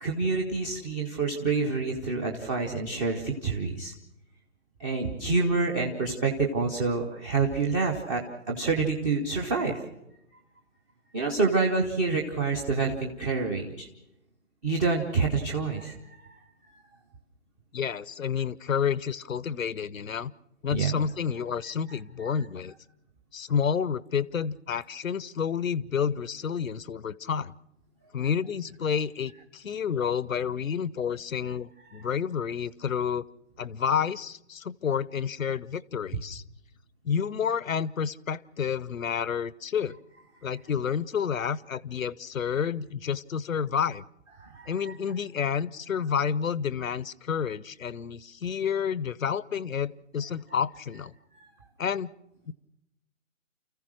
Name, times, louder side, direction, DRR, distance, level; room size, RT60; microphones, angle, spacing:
voice 1, 0.0-3.9 4.8-8.2 8.5-9.8 11.1-13.9 14.6-15.9 16.2-16.4 20.7-20.9 44.4-44.9, right 4 dB, 15° right, 1 dB, 0.9 m, -27 dB
voice 2, 17.7-20.3 20.6-22.7 23.3-27.5 28.1-33.2 33.6-36.4 37.0-40.0 40.4-44.0 44.7-51.1 51.8-52.1 52.5-52.6, left 7 dB, 75° left, 20 dB, 1.0 m, -29 dB
29.5 x 15.0 x 6.4 m, 0.86 s
hypercardioid pair, 155°, 40 cm